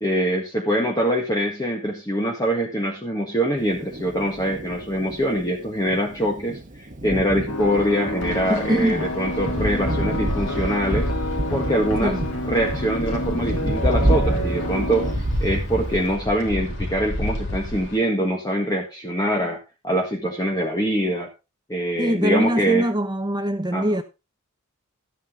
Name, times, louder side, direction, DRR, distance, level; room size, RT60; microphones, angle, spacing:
voice 1, 0.0-11.1 11.5-12.2 12.4-15.1 15.4-19.6 19.8-21.3 21.7-22.8 23.7-23.9, equal, 15° left, 1.6 m, -24 dB
Thunder, 3.6-16.2, right 1 dB, 35° right, 1.2 m, -29 dB
sound 1, 7.5-15.1, left 1 dB, 85° left, 2.2 m, -29 dB
Wind, 8.2-18.0, left 1 dB, 55° left, 3.6 m, -31 dB
voice 2, 8.5-9.1 12.0-12.2 22.0-24.0, equal, 20° right, 1.0 m, -23 dB
12.0 x 9.1 x 3.8 m
head